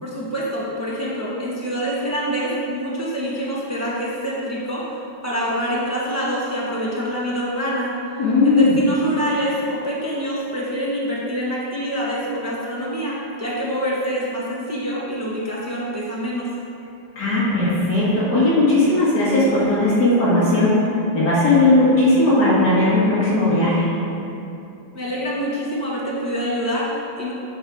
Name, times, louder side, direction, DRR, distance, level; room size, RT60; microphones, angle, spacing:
voice 1, 0.0-4.8 5.2-7.9 8.4-16.5 24.9-27.3, equal, 25° right, -6 dB, 0.3 m, -26 dB
voice 2, 8.2-8.8 17.2-23.9, left 2 dB, 55° left, -9 dB, 2.1 m, -17 dB
9.8 x 4.1 x 4.6 m, 2.7 s
omnidirectional pair, 2.2 m